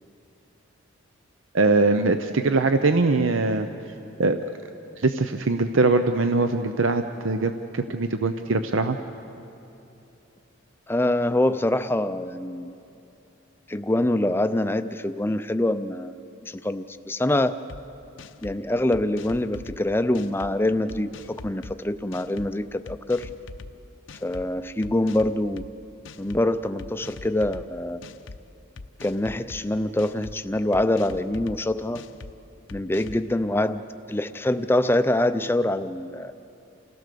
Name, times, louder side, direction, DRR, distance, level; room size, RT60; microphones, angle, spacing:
voice 1, 1.5-3.7 4.2-4.4 5.0-9.0, right 3 dB, 70° right, 8 dB, 0.7 m, -22 dB
voice 2, 10.9-12.7 13.7-16.2 16.5-17.6 18.4-23.3 24.2-25.7 26.2-28.0 29.0-32.0 32.7-33.8 34.1-36.3, left 1 dB, 10° left, 10 dB, 0.5 m, -25 dB
sound 1, 17.7-17.8 18.2-18.6 18.9-19.8 20.1-20.5 20.9-21.7 22.1-22.5 22.9-23.7 24.1-24.4 24.8-25.7 26.1-26.4 26.8-27.6 28.0-28.4 28.8-29.6 30.0-30.4 30.7-31.6 32.0-32.3 32.7-33.2, left 3 dB, 70° left, 0.7 m, -41 dB
29.0 x 16.5 x 6.8 m, 2.8 s
head